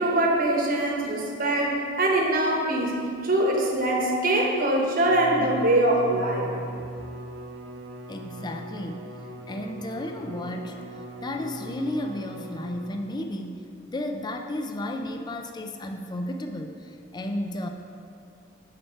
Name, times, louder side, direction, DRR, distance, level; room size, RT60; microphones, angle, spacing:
voice 1, 0.0-2.9 3.2-6.5, right 1 dB, 45° right, 0 dB, 1.1 m, -23 dB
Bowed string instrument, 5.0-13.3, right 1 dB, 65° right, 0.8 m, -40 dB
voice 2, 8.1-9.1 9.5-17.7, left 1 dB, 20° left, 4 dB, 0.4 m, -33 dB
10.5 x 4.6 x 4.5 m, 2.4 s
head